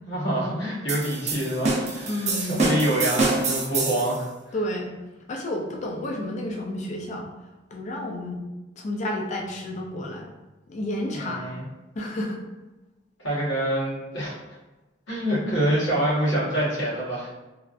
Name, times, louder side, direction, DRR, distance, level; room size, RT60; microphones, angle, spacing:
voice 1, 0.1-4.5 11.1-11.6 13.2-14.4 15.1-17.3, right 1 dB, 80° left, -7 dB, 1.2 m, -26 dB
sound 1, 0.9-4.2, right 3 dB, 35° right, 0.4 m, -26 dB
voice 2, 2.0-2.5 4.5-4.9 5.3-7.3 7.7-8.4 8.8-10.3 10.7-11.5 12.0-12.4, left 1 dB, 40° left, 0 dB, 0.3 m, -31 dB
3.2 x 2.4 x 2.5 m, 1.1 s
head